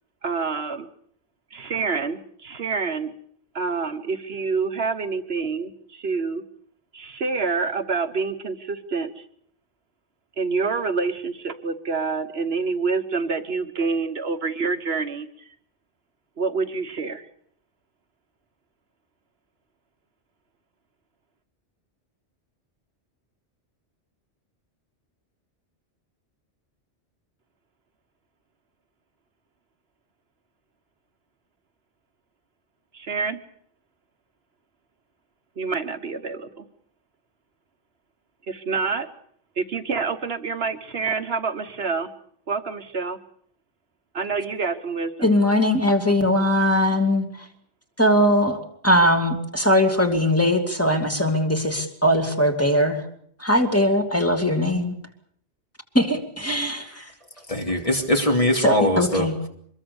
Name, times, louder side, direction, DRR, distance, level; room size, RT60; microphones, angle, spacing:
voice 1, 0.2-0.9 1.5-3.1 3.5-6.4 6.9-9.3 10.4-15.5 16.4-17.3 32.9-33.4 35.6-36.7 38.5-39.1 39.6-42.1 42.5-43.2 44.1-45.3, right 4 dB, 65° right, 8 dB, 1.4 m, -27 dB
voice 2, 45.2-47.3 48.0-48.6 48.8-53.0 53.4-55.0 55.9-57.1 58.6-59.3, left 1 dB, 10° left, 3 dB, 2.7 m, -20 dB
voice 3, 57.4-59.5, left 1 dB, 30° left, 2 dB, 3.0 m, -22 dB
24.5 x 21.5 x 7.1 m, 0.64 s
omnidirectional pair, 1.2 m